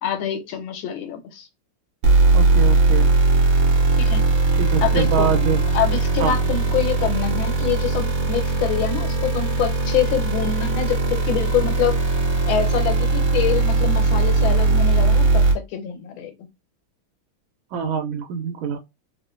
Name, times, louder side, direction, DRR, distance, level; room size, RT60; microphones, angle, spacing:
voice 1, 0.0-1.5 3.9-4.3 4.8-5.3 5.7-12.0 12.5-16.3, left 9 dB, 80° left, 1.6 m, -25 dB
sound 1, 2.0-15.5, right 3 dB, 70° right, 1.5 m, -19 dB
voice 2, 2.3-3.1 4.5-5.6 6.2-6.3 17.7-18.8, right 7 dB, 90° right, 1.4 m, -24 dB
4.3 x 2.1 x 2.5 m
omnidirectional pair, 2.2 m